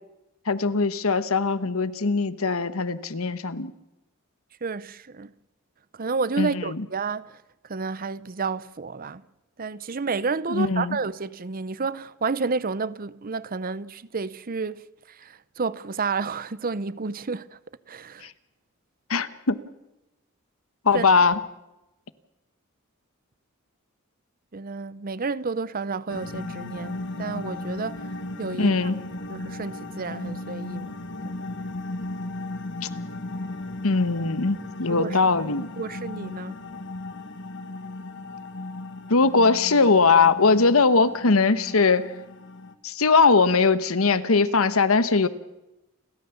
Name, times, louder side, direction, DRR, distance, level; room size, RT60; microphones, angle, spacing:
voice 1, 0.5-3.7 6.4-6.8 10.5-11.0 19.1-19.6 20.8-21.4 28.6-29.0 33.8-35.7 39.1-42.1 42.8-45.3, left 4 dB, 75° left, 1.1 m, -20 dB
voice 2, 4.6-5.3 5.9-7.4 7.7-9.2 9.6-14.8 15.1-17.6 17.9-18.3 20.9-21.0 24.5-28.1 28.4-28.7 29.3-31.0 31.2-31.3 34.9-35.2 35.8-36.6, right 4 dB, 40° right, 0.7 m, -30 dB
sound 1, 26.1-42.7, left 2 dB, 55° left, 1.5 m, -36 dB
30.0 x 13.5 x 7.1 m
head